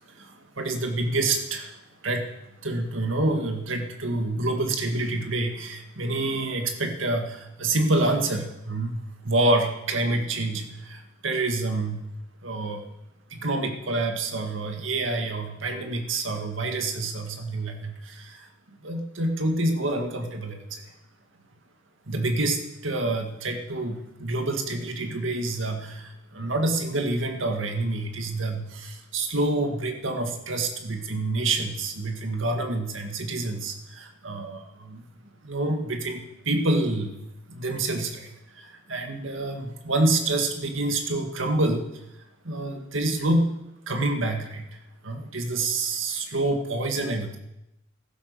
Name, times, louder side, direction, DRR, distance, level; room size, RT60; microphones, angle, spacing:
voice 1, 0.1-1.8 2.0-2.3 2.6-12.0 12.4-12.8 13.3-18.5 18.8-20.8 22.1-35.0 35.4-37.1 37.5-41.9 42.4-43.5 43.9-44.6 45.0-47.4, right 2 dB, 90° right, 4 dB, 1.9 m, -27 dB
15.5 x 11.5 x 6.8 m, 0.88 s
head